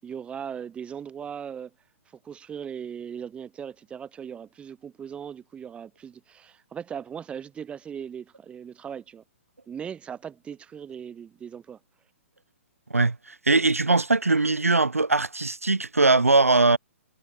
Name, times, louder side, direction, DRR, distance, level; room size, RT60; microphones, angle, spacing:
voice 1, 0.0-1.7 2.2-9.2 9.7-11.8, right 8 dB, 15° right, 7.7 m, -38 dB
voice 2, 13.5-16.8, right 3 dB, 85° right, 4.2 m, -20 dB
figure-of-eight pair, 120°, 7 cm